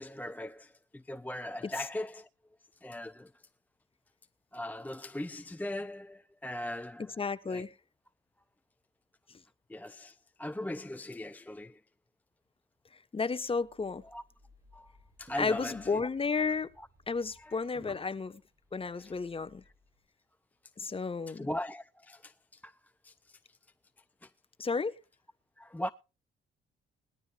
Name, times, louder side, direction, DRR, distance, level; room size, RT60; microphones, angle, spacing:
voice 1, 0.0-2.3 2.8-3.3 4.5-7.1 7.5-7.6 9.7-11.8 14.1-14.2 14.7-14.9 15.2-16.1 16.8-16.9 17.4-17.6 21.3-22.8 23.0-23.6 24.2-24.3 25.6-25.9, left 1 dB, 10° left, 0.5 m, -39 dB
voice 2, 7.0-7.7 13.1-14.0 15.4-16.7 17.1-18.4 18.7-19.6 20.8-21.5 24.6-24.9, left 4 dB, 30° left, 1.2 m, -32 dB
sound 1, 13.4-20.0, equal, 15° right, 6.7 m, -58 dB
20.5 x 13.0 x 2.5 m
cardioid pair, 90°, 20 cm